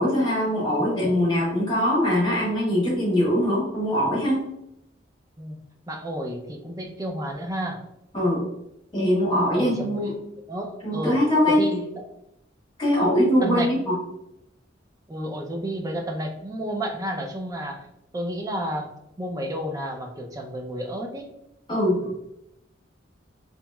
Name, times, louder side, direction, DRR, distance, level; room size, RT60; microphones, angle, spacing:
voice 1, 0.0-4.4 8.1-8.5 8.9-10.1 10.8-11.6 12.8-13.9 21.7-22.1, equal, 25° left, -7 dB, 1.3 m, -22 dB
voice 2, 5.9-7.8 9.6-10.2 10.5-11.2 11.5-12.1 13.4-13.7 15.1-17.9 18.1-18.9 19.2-21.3, equal, 20° right, 2 dB, 0.4 m, -31 dB
2.9 x 2.8 x 2.2 m, 0.82 s
head